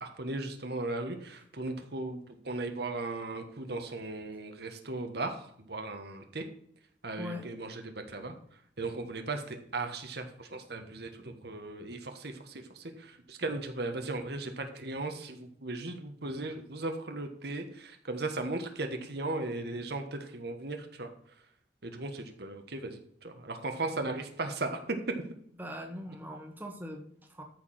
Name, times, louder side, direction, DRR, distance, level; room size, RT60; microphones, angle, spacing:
voice 1, 0.0-6.4 7.0-8.3 8.8-21.1 21.8-25.1, right 2 dB, 60° right, 5 dB, 1.3 m, -37 dB
voice 2, 7.2-7.5 25.6-27.4, equal, 10° right, 3 dB, 1.5 m, -41 dB
13.5 x 4.8 x 5.8 m, 0.65 s
head